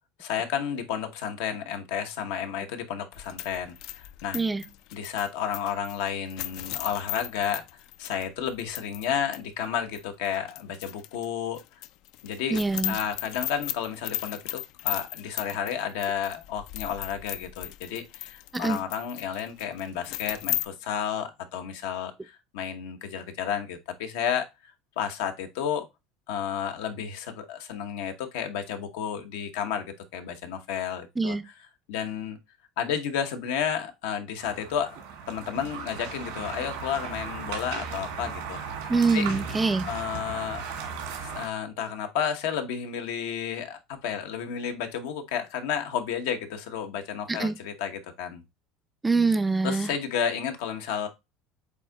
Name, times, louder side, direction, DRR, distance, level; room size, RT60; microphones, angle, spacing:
voice 1, 0.2-4.4 4.9-7.6 8.0-11.6 12.2-12.6 12.9-25.9 26.3-29.8 30.1-31.4 31.9-32.4 32.8-35.0 35.3-38.6 39.1-39.3 39.8-40.6 41.2-48.4 49.6-51.1, left 8 dB, 85° left, 0.9 m, -31 dB
sound 1, 3.1-9.1 9.3-9.4 9.9-11.3 11.6-20.7, left 15 dB, 65° left, 0.3 m, -36 dB
voice 2, 4.3-4.6 12.5-13.0 18.5-18.8 31.2-31.4 38.9-39.8 47.3-47.6 49.0-49.9, right 3 dB, 10° right, 0.4 m, -24 dB
sound 2, 34.4-41.5, right 6 dB, 85° right, 1.8 m, -36 dB
8.2 x 2.7 x 2.2 m
supercardioid pair, 130°, 0 cm